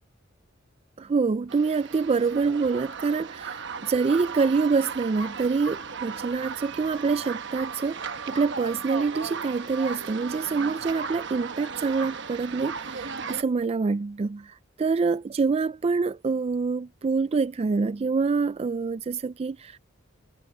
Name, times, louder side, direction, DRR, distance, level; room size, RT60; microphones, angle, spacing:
voice 1, 1.0-19.8, right 4 dB, 30° right, 0.3 m, -26 dB
sound 1, 1.5-13.4, right 5 dB, 65° right, 1.0 m, -36 dB
head